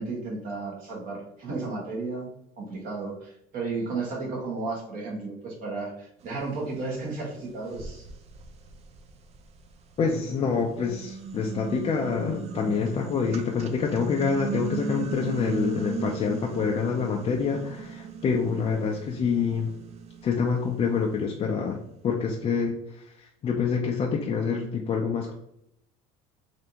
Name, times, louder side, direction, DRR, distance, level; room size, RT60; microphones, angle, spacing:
voice 1, 0.0-2.3 2.6-8.0, right 3 dB, 55° right, -2 dB, 1.3 m, -33 dB
sound 1, 7.0-7.1 7.7-10.0 10.5-21.8, right 5 dB, 40° right, 0.4 m, -37 dB
voice 2, 10.0-19.7 20.2-21.8 22.0-25.4, left 5 dB, 35° left, 0 dB, 0.4 m, -27 dB
3.3 x 2.5 x 2.9 m, 0.77 s
supercardioid pair, 110°, 17 cm